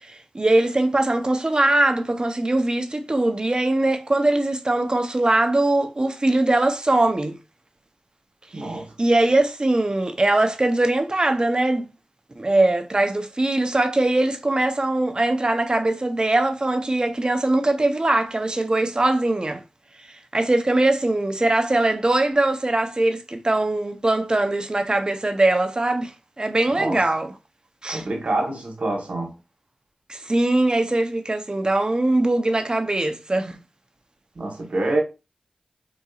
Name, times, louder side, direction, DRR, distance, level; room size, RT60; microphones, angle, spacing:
voice 1, 0.0-7.4 8.6-11.9 12.4-19.6 20.1-27.3 27.8-28.0 30.1-33.6, right 2 dB, 35° right, 0.7 m, -21 dB
voice 2, 8.5-8.9 26.8-27.0 27.9-29.3 34.3-35.0, right 2 dB, 70° right, 1.2 m, -26 dB
3.9 x 2.6 x 2.4 m
cardioid pair, 40°, 2 cm